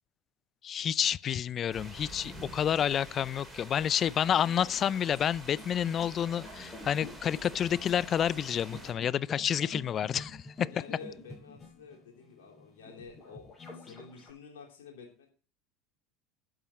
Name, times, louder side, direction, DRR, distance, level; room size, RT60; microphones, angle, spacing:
voice 1, 0.6-10.7, left 9 dB, 40° left, 0.4 m, -29 dB
sound 1, 1.7-8.9, right 1 dB, 10° right, 5.4 m, -48 dB
sound 2, 4.2-14.3, left 2 dB, 25° left, 7.2 m, -48 dB
sound 3, 6.0-9.9, right 3 dB, 25° right, 3.6 m, -60 dB
voice 2, 10.6-15.3, left 5 dB, 75° left, 3.1 m, -50 dB
12.0 x 8.6 x 4.2 m
hypercardioid pair, 80°, 0 cm